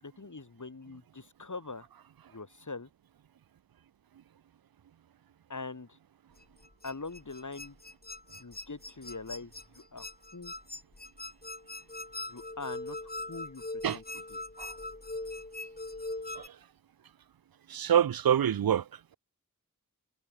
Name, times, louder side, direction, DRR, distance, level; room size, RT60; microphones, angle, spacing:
voice 1, 0.0-1.9 2.3-2.9 5.5-6.0 6.8-7.8 8.4-9.5 9.9-10.1 10.3-10.5 12.3-13.6 13.9-14.0, left 3 dB, 60° left, 7.4 m, -42 dB
sound 1, 6.4-16.5, left 2 dB, 25° left, 3.5 m, -41 dB
voice 2, 17.7-18.9, right 9 dB, 85° right, 0.6 m, -26 dB
wide cardioid pair, 60°, 35 cm